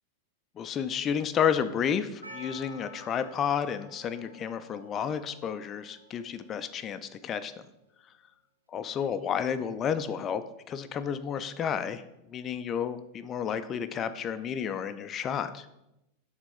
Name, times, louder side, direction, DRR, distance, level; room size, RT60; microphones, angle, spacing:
voice 1, 0.6-7.5 8.7-12.0 12.3-15.7, left 8 dB, 30° left, 10 dB, 0.3 m, -31 dB
Percussion, 2.2-7.1, equal, 80° right, 0.6 m, -50 dB
6.0 x 3.7 x 5.1 m, 0.87 s
figure-of-eight pair, 90°, 0 cm